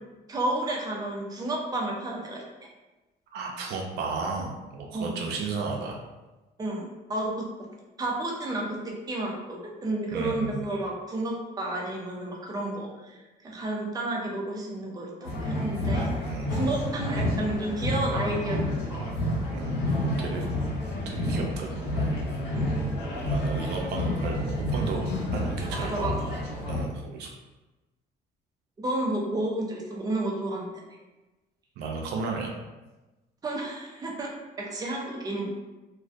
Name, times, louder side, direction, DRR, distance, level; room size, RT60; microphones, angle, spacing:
voice 1, 0.3-2.7 4.9-5.2 6.6-7.3 8.0-16.1 16.5-19.1 22.5-22.7 25.7-26.1 28.8-30.7 33.4-34.3 34.6-35.5, right 1 dB, 20° right, -2 dB, 0.5 m, -31 dB
voice 2, 3.3-6.0 10.1-10.6 15.9-16.6 19.5-20.4 21.1-22.1 23.3-25.0 25.3-26.3 26.7-27.3 31.8-32.5, right 4 dB, 75° right, 1 dB, 0.4 m, -34 dB
sound 1, 15.2-26.8, left 1 dB, 85° left, 0.8 m, -29 dB
2.2 x 2.2 x 2.5 m, 1.1 s
cardioid pair, 110°, 17 cm